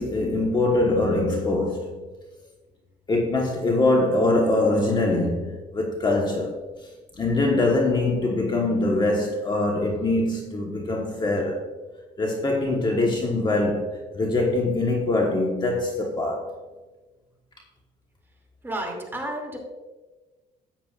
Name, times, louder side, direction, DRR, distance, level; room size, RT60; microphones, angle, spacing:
voice 1, 0.0-1.9 3.1-6.5 7.2-11.7 12.2-16.5, left 2 dB, 25° left, 1.2 m, -23 dB
voice 2, 18.6-19.6, right 1 dB, 15° right, 2.6 m, -31 dB
13.5 x 9.0 x 2.5 m
cardioid pair, 110°, 17 cm